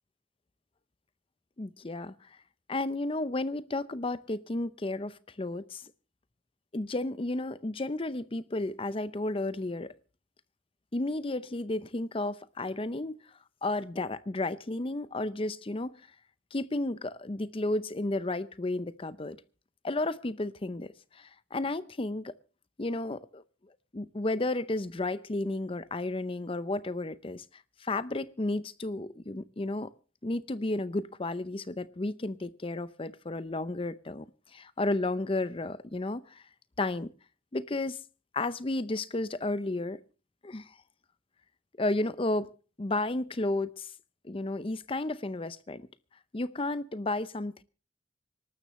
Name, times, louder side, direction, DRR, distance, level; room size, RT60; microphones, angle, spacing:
voice 1, 1.6-2.1 2.7-5.9 6.7-9.9 10.9-13.2 13.6-15.9 16.5-19.4 19.8-22.3 22.8-23.4 23.9-27.4 27.8-29.9 30.2-36.4 36.8-37.1 37.5-38.0 38.3-40.0 40.4-40.8 41.8-42.5 42.8-43.9 44.2-45.9 46.3-47.6, left 2 dB, 30° left, 0.6 m, -32 dB
25.5 x 12.5 x 3.1 m
head